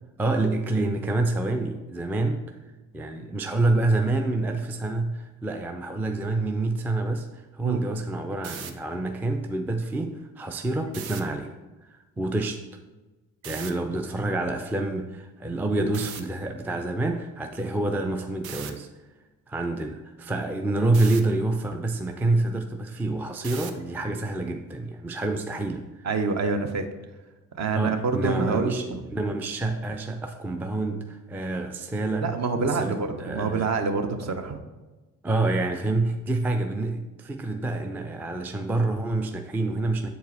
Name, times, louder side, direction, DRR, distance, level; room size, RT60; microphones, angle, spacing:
voice 1, 0.2-2.4 2.9-12.6 13.4-18.9 19.5-26.1 27.7-28.9 29.1-32.3 32.6-33.7 35.2-40.1, right 2 dB, 5° right, 5 dB, 0.3 m, -27 dB
sound 1, 8.3-8.7 10.9-11.2 13.4-13.7 15.9-16.2 18.4-18.7 20.9-21.2 23.4-23.8, right 8 dB, 85° right, 0.5 m, -37 dB
voice 2, 26.0-26.9 27.6-29.0 32.2-34.6, right 4 dB, 40° right, 7 dB, 0.8 m, -26 dB
7.7 x 4.5 x 3.2 m, 1.2 s
figure-of-eight pair, 45°, 41 cm